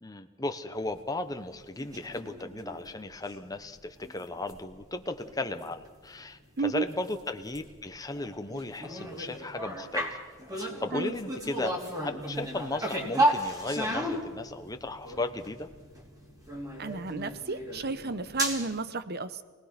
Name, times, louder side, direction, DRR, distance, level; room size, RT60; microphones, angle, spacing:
voice 1, 0.0-10.2 10.5-11.7 12.0-15.7, left 2 dB, 15° left, 7 dB, 1.0 m, -36 dB
sound 1, 1.7-2.9 3.3-3.6 3.9-6.1 6.4-6.5 6.9-18.8, right 1 dB, 15° right, 3.2 m, -34 dB
voice 2, 6.6-6.9 10.9-11.1 16.8-19.4, right 4 dB, 50° right, 13 dB, 1.0 m, -32 dB
28.0 x 19.0 x 6.0 m, 1.4 s
head